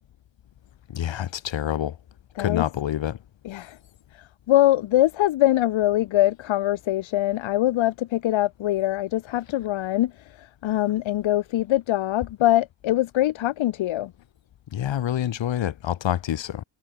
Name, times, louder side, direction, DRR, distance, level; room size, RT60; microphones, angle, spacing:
voice 1, 0.9-2.0 2.4-3.2 14.7-16.6, left 11 dB, 70° left, 6.0 m, -27 dB
voice 2, 3.4-3.8 4.5-10.1 10.4-14.1, left 14 dB, 90° left, 2.4 m, -23 dB
cardioid pair, 105°, 46 cm